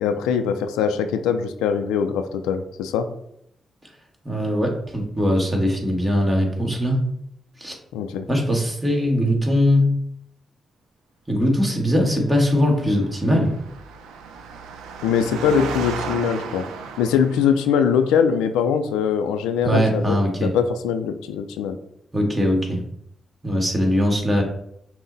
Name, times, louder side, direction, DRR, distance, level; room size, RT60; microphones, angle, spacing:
voice 1, 0.0-3.1 7.9-8.3 15.0-16.6 17.0-21.8, left 7 dB, 90° left, 8 dB, 0.4 m, -22 dB
voice 2, 4.2-7.0 7.6-7.7 8.3-9.9 11.3-13.5 19.6-20.5 22.1-22.8 23.4-24.4, equal, 25° right, 1 dB, 1.7 m, -20 dB
Engine, 12.2-17.8, right 4 dB, 85° right, 0.4 m, -35 dB
5.9 x 2.1 x 4.0 m, 0.73 s
supercardioid pair, 50°, 0 cm